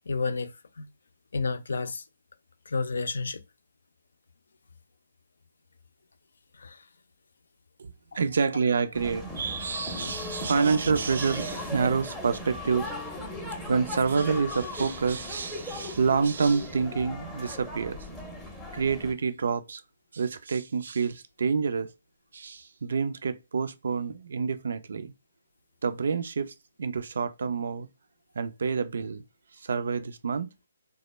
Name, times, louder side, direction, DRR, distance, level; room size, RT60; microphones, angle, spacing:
voice 1, 0.1-0.9 1.3-2.0 2.7-3.4 6.5-6.8, left 4 dB, 75° left, 0.4 m, -31 dB
voice 2, 7.8-12.9 13.7-18.0 18.7-19.8 20.1-21.9 22.3-25.1 25.8-27.9 28.4-29.2 29.6-30.5, right 5 dB, 65° right, 0.4 m, -28 dB
sound 1, 8.9-19.1, left 1 dB, 5° left, 0.6 m, -38 dB
2.1 x 2.0 x 3.1 m
hypercardioid pair, 150°, 0 cm